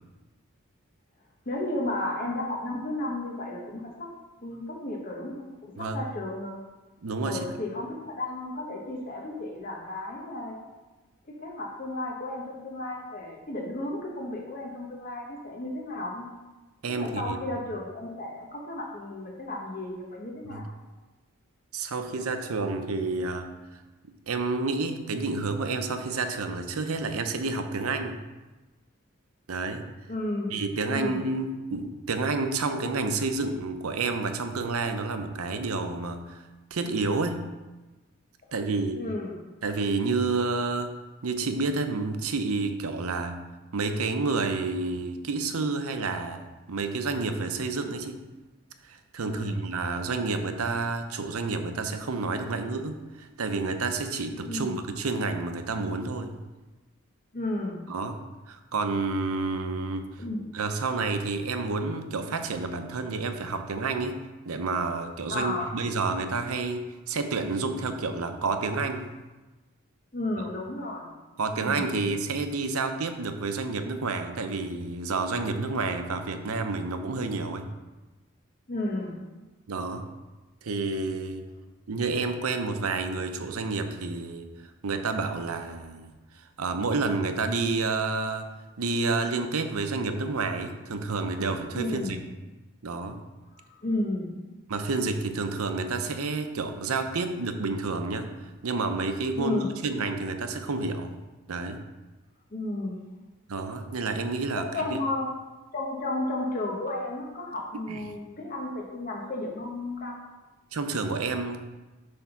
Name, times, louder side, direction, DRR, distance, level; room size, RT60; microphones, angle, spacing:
voice 1, 1.5-4.1 4.4-6.6 7.2-10.6 11.3-16.3 17.0-20.7 30.1-30.6 30.9-31.3 39.0-39.4 49.2-49.6 54.4-54.7 57.3-57.8 60.2-60.4 65.3-65.8 70.1-71.1 71.6-72.0 78.7-79.2 91.7-92.2 93.5-94.3 99.4-99.7 102.5-103.0 104.5-105.3 105.7-110.2, left 2 dB, 40° left, -1 dB, 1.0 m, -33 dB
voice 2, 7.0-7.6 16.8-17.4 20.5-20.6 21.7-23.5 24.3-28.2 29.5-29.9 30.5-36.4 36.7-37.5 38.5-39.0 39.6-41.0 41.2-43.4 43.7-48.2 48.8-56.4 57.9-60.2 60.5-69.1 71.4-77.7 79.7-80.1 80.6-81.5 81.9-84.5 84.8-88.5 88.8-92.2 92.8-93.2 94.7-101.2 101.5-101.8 103.5-105.0 107.9-108.0 110.7-111.6, right 3 dB, 90° right, 7 dB, 0.7 m, -29 dB
7.8 x 3.6 x 5.8 m, 1.2 s
head